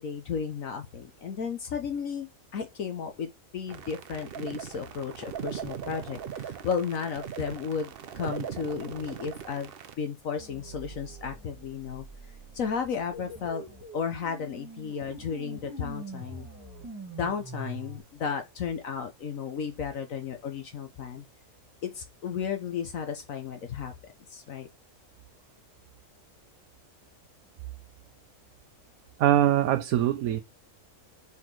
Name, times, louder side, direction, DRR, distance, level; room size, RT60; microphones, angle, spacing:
voice 1, 0.0-2.3 2.5-9.7 10.0-12.0 12.5-13.6 13.9-16.5 17.2-21.2 21.8-23.9 24.3-24.7, left 6 dB, 65° left, 1.3 m, -34 dB
sound 1, 3.7-9.9, right 8 dB, 55° right, 0.7 m, -39 dB
sound 2, 10.4-18.0, right 2 dB, 15° right, 1.4 m, -44 dB
voice 2, 29.2-30.4, right 12 dB, 80° right, 1.0 m, -22 dB
5.8 x 4.2 x 4.6 m
omnidirectional pair, 1.5 m